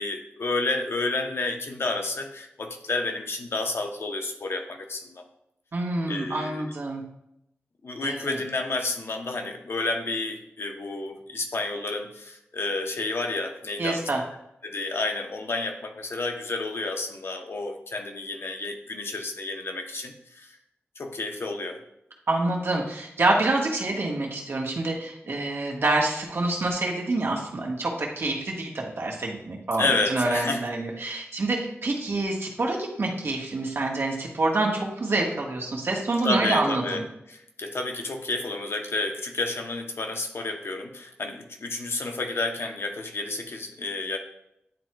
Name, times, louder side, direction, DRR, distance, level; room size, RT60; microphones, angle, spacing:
voice 1, 0.0-5.2 6.1-6.7 7.8-14.1 14.6-20.6 21.0-21.8 29.8-30.6 36.2-37.0 37.3-44.2, left 3 dB, 70° left, 4 dB, 0.8 m, -30 dB
voice 2, 5.7-7.0 8.0-8.4 13.8-14.2 22.3-37.0, right 2 dB, 65° right, -1 dB, 1.4 m, -27 dB
9.9 x 4.4 x 2.2 m, 0.81 s
wide cardioid pair, 75°, 4 cm